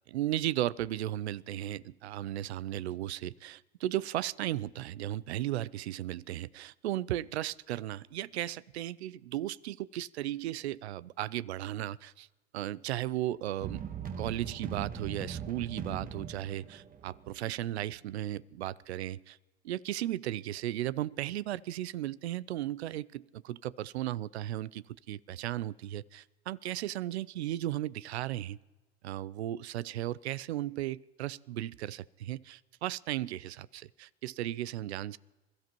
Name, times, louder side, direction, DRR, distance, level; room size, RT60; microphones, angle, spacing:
voice 1, 0.1-12.3 12.5-13.8 14.2-19.4 19.6-28.6 29.0-35.2, right 13 dB, 85° right, 21 dB, 0.5 m, -35 dB
sound 1, 13.6-17.6, right 7 dB, 25° right, 1.3 m, -40 dB
27.5 x 13.5 x 3.1 m, 1.1 s
hypercardioid pair, 90°, 32 cm